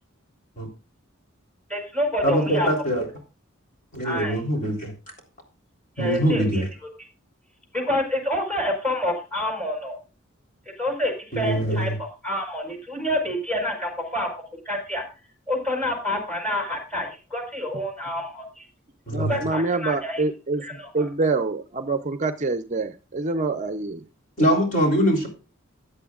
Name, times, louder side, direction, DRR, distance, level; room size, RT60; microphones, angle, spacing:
voice 1, 1.7-2.7 4.0-4.4 6.0-6.6 7.7-10.0 10.8-14.3 14.6-15.0 15.5-18.6 19.2-20.2 20.6-21.1, left 1 dB, 5° left, 2 dB, 5.0 m, -28 dB
voice 2, 2.2-3.1 3.9-4.9 6.0-6.7 11.3-12.0 19.1-19.4 24.4-25.3, right 1 dB, 40° left, 0 dB, 3.6 m, -23 dB
voice 3, 19.1-24.1, right 3 dB, 35° right, 10 dB, 0.6 m, -26 dB
15.5 x 10.0 x 2.4 m, 0.32 s
head